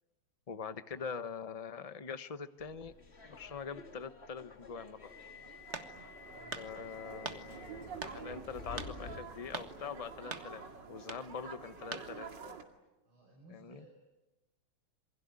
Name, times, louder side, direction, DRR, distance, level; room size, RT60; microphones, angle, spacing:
voice 1, 0.5-2.9 3.2-5.1 6.6-10.6 10.9-12.3 13.5-13.8, left 6 dB, 50° left, 11 dB, 0.4 m, -43 dB
Subway metro underground, 2.6-10.2, left 3 dB, 30° left, 2.3 m, -51 dB
sound 1, 4.9-12.6, right 5 dB, 60° right, 2.9 m, -49 dB
sound 2, 5.7-6.1 6.5-6.7 7.3-7.4 8.0-8.2 8.8-8.9 9.5-9.7 10.3-10.5 11.0-11.2 11.9-12.1, right 4 dB, 35° right, 1.8 m, -41 dB
voice 2, 6.3-6.7 13.0-13.9, right 1 dB, 85° right, -2 dB, 6.5 m, -59 dB
28.0 x 22.0 x 9.7 m, 1.0 s
omnidirectional pair, 2.2 m